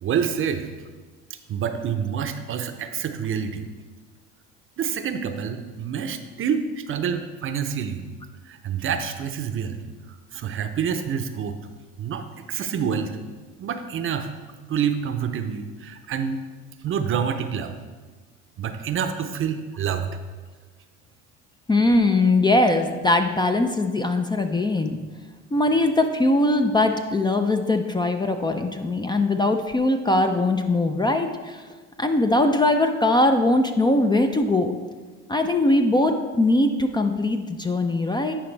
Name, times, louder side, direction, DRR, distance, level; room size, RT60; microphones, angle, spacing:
voice 1, 0.0-0.7 1.5-3.7 4.8-8.0 8.4-9.8 10.3-11.5 12.0-13.2 13.6-14.3 14.7-16.4 16.8-17.8 18.6-20.2, right 7 dB, 45° right, 8 dB, 0.7 m, -27 dB
voice 2, 21.7-25.0 25.5-31.7 32.0-34.7 35.3-38.3, left 2 dB, 15° left, 6 dB, 0.5 m, -21 dB
10.0 x 5.0 x 3.3 m, 1.4 s
supercardioid pair, 80°, 30 cm